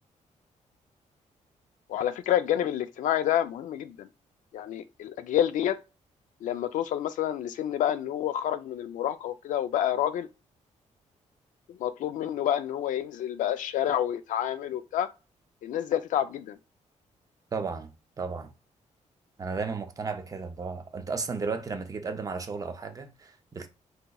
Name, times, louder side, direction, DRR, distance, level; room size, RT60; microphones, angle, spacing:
voice 1, 1.9-4.1 4.5-5.8 6.4-10.3 11.7-15.1 15.6-16.6, left 11 dB, 85° left, 0.4 m, -28 dB
voice 2, 17.5-17.9 18.2-18.5 19.4-23.7, right 4 dB, 25° right, 0.4 m, -34 dB
4.1 x 2.7 x 2.3 m
wide cardioid pair, 145°, 13 cm